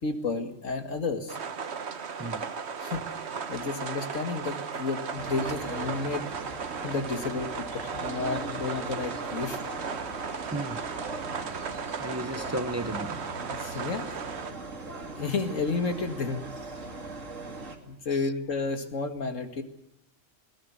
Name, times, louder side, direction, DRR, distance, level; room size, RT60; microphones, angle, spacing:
voice 1, 0.0-1.4 2.8-3.1 3.5-6.3 6.8-9.6 12.3-12.5 13.6-14.2 15.2-16.4 17.9-19.6, left 4 dB, 85° left, 2.4 m, -31 dB
sound 1, 1.3-14.5, right 6 dB, 60° right, 1.4 m, -36 dB
sound 2, 5.2-17.8, right 3 dB, 85° right, 2.8 m, -39 dB
voice 2, 10.5-10.9 12.0-13.2 18.1-18.3, right 1 dB, 15° right, 0.7 m, -34 dB
20.5 x 17.5 x 9.5 m
omnidirectional pair, 1.3 m